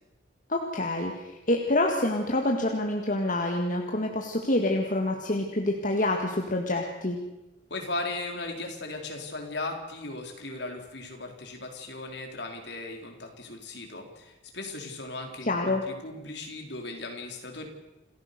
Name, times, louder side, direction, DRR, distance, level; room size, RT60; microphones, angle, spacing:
voice 1, 0.5-7.2 15.4-15.8, left 1 dB, 45° left, 2 dB, 1.9 m, -27 dB
voice 2, 7.7-17.7, left 2 dB, 65° left, 2 dB, 4.1 m, -37 dB
28.0 x 15.0 x 6.8 m, 1.0 s
head